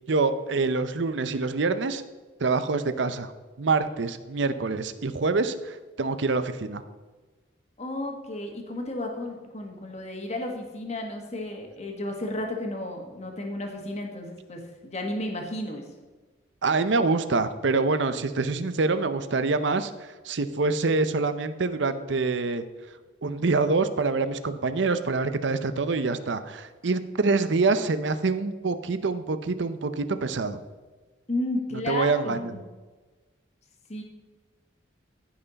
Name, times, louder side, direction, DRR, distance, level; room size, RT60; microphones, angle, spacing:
voice 1, 0.1-2.0 2.4-3.3 3.6-6.8 16.6-22.6 23.2-30.6 31.7-32.5, right 3 dB, 65° right, 11 dB, 0.6 m, -26 dB
voice 2, 7.8-15.8 31.3-32.6 33.9-34.0, left 1 dB, 35° left, 2 dB, 1.5 m, -33 dB
15.0 x 5.7 x 4.1 m, 1.3 s
head